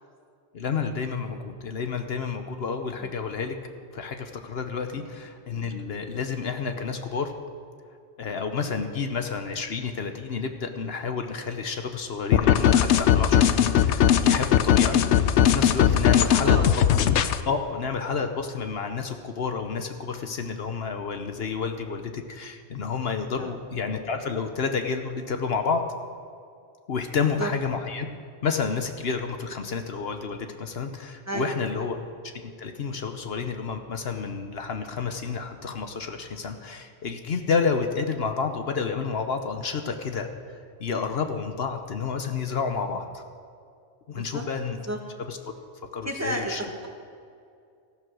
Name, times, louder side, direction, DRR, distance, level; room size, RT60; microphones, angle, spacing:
voice 1, 0.5-3.6 3.9-7.3 8.2-16.6 17.4-25.8 26.9-28.1 28.4-32.0 32.2-40.3 40.8-43.2 44.1-44.8 45.3-45.4 45.9-46.6, left 5 dB, 65° left, 6 dB, 1.1 m, -30 dB
sound 1, 12.3-17.4, left 9 dB, 85° left, 0.9 m, -19 dB
voice 2, 16.1-16.9 23.4-23.5 27.4-27.5 31.3-31.5 44.1-44.4 44.9-45.0 46.0-46.9, right 1 dB, 15° right, 1 dB, 1.6 m, -32 dB
14.5 x 10.5 x 6.3 m, 2.3 s
omnidirectional pair, 1.1 m